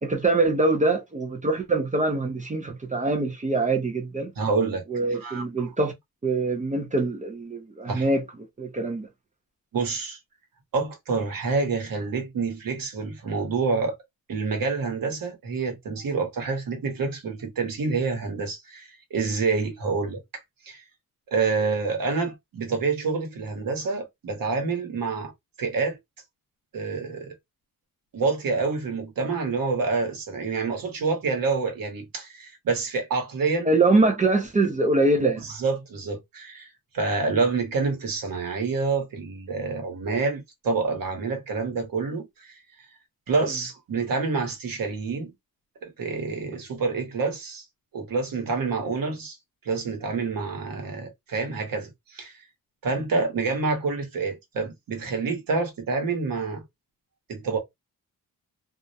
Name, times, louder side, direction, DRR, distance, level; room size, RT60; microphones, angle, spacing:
voice 1, 0.0-4.3 4.9-5.9 6.2-8.2 8.6-9.1 33.7-35.4, right 2 dB, 20° right, 0.4 m, -23 dB
voice 2, 4.4-4.8 5.1-5.7 7.9-8.1 9.7-10.2 10.7-13.9 14.3-20.8 21.3-25.3 25.6-26.0 26.7-27.3 28.1-33.7 35.4-36.7 36.9-42.6 43.3-45.3 45.8-47.6 47.9-49.4 49.6-52.4 52.8-56.6 57.3-57.6, right 4 dB, 75° right, 1.0 m, -27 dB
2.3 x 2.0 x 2.7 m
wide cardioid pair, 145°, 35 cm